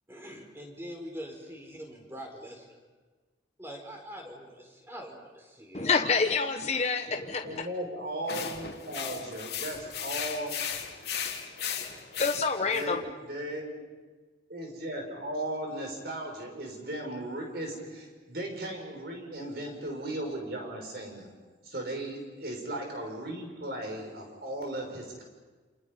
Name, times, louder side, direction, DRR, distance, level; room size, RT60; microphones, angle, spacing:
voice 1, 0.1-2.7 3.6-5.9, equal, 15° right, 4.5 m, -43 dB
voice 2, 5.7-7.6 12.2-13.0, left 4 dB, 35° left, 0.9 m, -27 dB
voice 3, 7.4-10.6 12.6-13.8 14.5-21.3 21.6-25.2, right 1 dB, 55° right, 6.4 m, -37 dB
sound 1, 8.3-12.8, left 7 dB, 60° left, 2.9 m, -36 dB
28.5 x 28.0 x 5.7 m
head